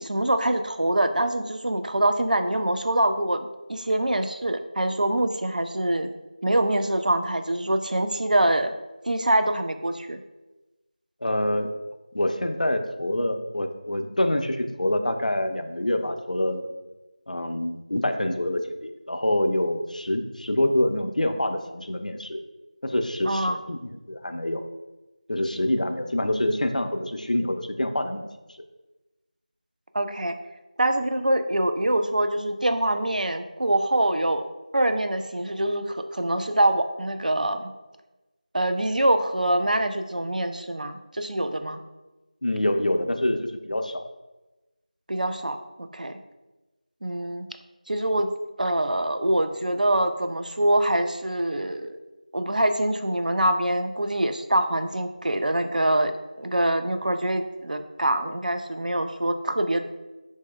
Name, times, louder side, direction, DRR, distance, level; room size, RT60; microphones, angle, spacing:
voice 1, 0.0-6.1 6.4-8.7 9.1-10.2 23.3-23.6 29.9-30.4 30.8-34.4 34.7-37.7 38.5-41.8 45.1-46.2 47.0-47.5 47.9-48.3 48.6-52.0 52.3-56.1 56.4-59.8, right 1 dB, 90° right, 7 dB, 0.3 m, -24 dB
voice 2, 11.2-11.7 12.1-16.7 17.3-22.4 22.8-24.6 25.3-28.3 42.4-44.0, left 1 dB, 75° left, 6 dB, 0.4 m, -26 dB
3.3 x 2.9 x 2.2 m, 1.1 s
figure-of-eight pair, 180°, 4 cm